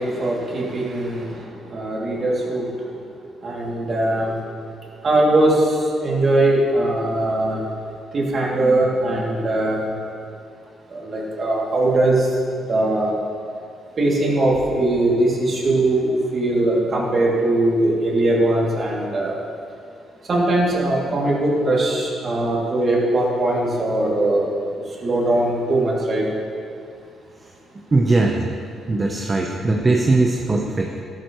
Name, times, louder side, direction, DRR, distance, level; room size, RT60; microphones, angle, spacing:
voice 1, 0.0-1.4 1.7-2.6 3.4-4.3 5.0-5.7 6.0-7.6 8.1-9.9 10.9-12.3 12.7-13.1 14.0-19.3 20.3-24.7 25.0-26.2, right 2 dB, 45° right, -3 dB, 2.6 m, -20 dB
voice 2, 27.9-28.5 28.9-31.0, right 2 dB, 30° right, 1 dB, 0.8 m, -19 dB
12.5 x 11.0 x 3.1 m, 2.3 s
cardioid pair, 90°, 0 cm